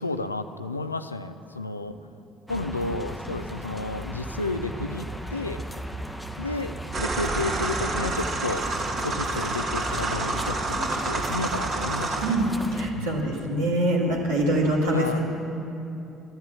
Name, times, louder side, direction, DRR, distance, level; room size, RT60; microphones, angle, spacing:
voice 1, 0.0-2.0 2.5-5.6 6.4-8.6 9.0-12.4 12.9-13.3 14.9-15.2, left 2 dB, 90° left, 10 dB, 0.4 m, -32 dB
sound 1, 2.5-12.9, equal, 5° left, 1.0 m, -36 dB
sound 2, 6.9-12.4, right 2 dB, 50° right, 2.3 m, -28 dB
voice 2, 12.2-15.2, right 1 dB, 75° right, -3 dB, 2.4 m, -24 dB
12.0 x 11.0 x 8.3 m, 2.8 s
figure-of-eight pair, 55°, 0 cm